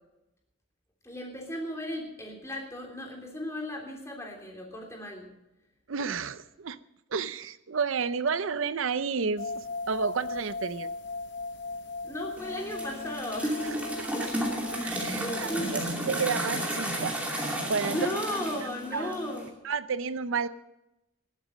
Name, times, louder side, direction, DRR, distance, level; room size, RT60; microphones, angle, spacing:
voice 1, 1.0-5.3 12.0-14.3 15.1-15.7 17.8-19.4, left 1 dB, 15° left, 0 dB, 3.2 m, -36 dB
voice 2, 5.9-6.8 7.1-9.5 9.9-10.9 14.0-14.1 14.8-18.0 18.6-19.1 19.6-20.5, right 5 dB, 85° right, 15 dB, 0.6 m, -31 dB
sound 1, 9.4-15.9, left 3 dB, 60° left, 0.9 m, -38 dB
sound 2, 12.4-19.5, right 1 dB, 5° right, 2.6 m, -33 dB
19.5 x 8.2 x 6.4 m, 0.90 s
head